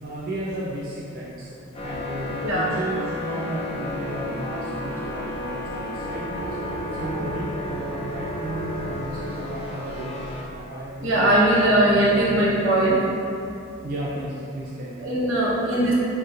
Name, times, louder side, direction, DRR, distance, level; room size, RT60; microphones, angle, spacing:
voice 1, 0.0-1.5 1.8-10.2 10.5-12.5 13.8-15.1, right 1 dB, 45° right, -6 dB, 0.3 m, -34 dB
sound 1, 1.7-10.4, left 1 dB, 30° left, 0.4 m, -32 dB
voice 2, 11.0-13.0 15.0-15.9, right 1 dB, 80° right, -5 dB, 0.7 m, -20 dB
3.7 x 2.1 x 2.8 m, 2.6 s
head